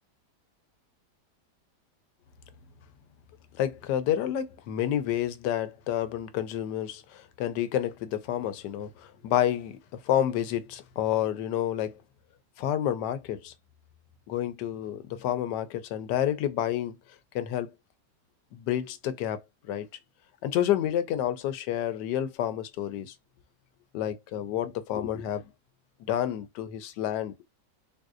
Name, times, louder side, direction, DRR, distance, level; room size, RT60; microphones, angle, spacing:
voice 1, 3.6-12.0 12.6-13.5 14.3-17.0 17.3-17.7 18.5-19.9 20.4-23.1 23.9-25.4 26.0-27.3, left 11 dB, 80° left, 1.2 m, -29 dB
3.7 x 2.7 x 2.4 m
omnidirectional pair, 1.9 m